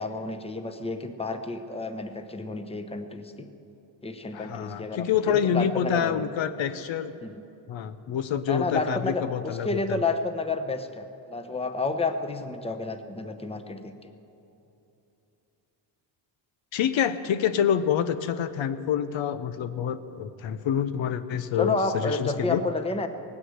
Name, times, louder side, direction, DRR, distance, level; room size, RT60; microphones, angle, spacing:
voice 1, 0.0-3.5 4.0-6.3 7.2-7.3 8.5-14.1 21.6-23.1, left 3 dB, 10° left, 8 dB, 0.9 m, -30 dB
voice 2, 4.3-7.1 7.7-10.0 16.7-22.6, left 8 dB, 75° left, 12 dB, 0.8 m, -27 dB
18.5 x 9.7 x 7.9 m, 2.9 s
cardioid pair, 105°, 47 cm